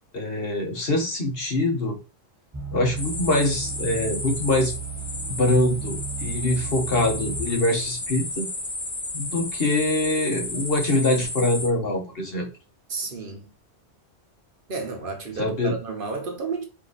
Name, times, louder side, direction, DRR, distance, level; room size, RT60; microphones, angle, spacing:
voice 1, 0.1-2.0 2.7-4.8 5.3-8.5 9.1-12.5 15.4-15.7, left 2 dB, 60° left, 1.4 m, -24 dB
sound 1, 2.5-7.7 8.3-8.4, right 6 dB, 20° right, 0.5 m, -35 dB
sound 2, 3.0-11.7, left 2 dB, 20° left, 0.6 m, -33 dB
voice 2, 12.9-13.5 14.7-16.6, right 4 dB, 55° right, 1.2 m, -32 dB
4.3 x 2.8 x 4.0 m
omnidirectional pair, 1.1 m